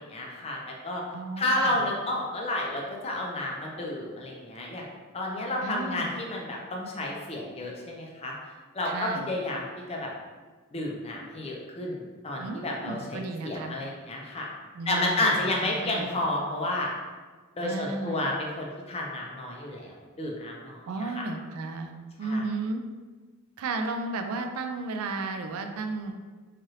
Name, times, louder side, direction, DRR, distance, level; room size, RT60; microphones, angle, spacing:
voice 1, 0.0-1.0 1.4-8.3 8.7-10.1 10.7-14.5 14.9-16.9 17.6-21.1 22.2-22.5, left 1 dB, 30° left, -1 dB, 0.5 m, -31 dB
voice 2, 1.1-1.8 5.6-6.1 8.8-9.3 12.4-13.8 14.7-16.1 17.6-18.3 20.9-21.9 22.2-22.8 23.6-26.1, right 3 dB, 80° right, 6 dB, 0.3 m, -34 dB
3.2 x 2.4 x 2.7 m, 1.4 s
head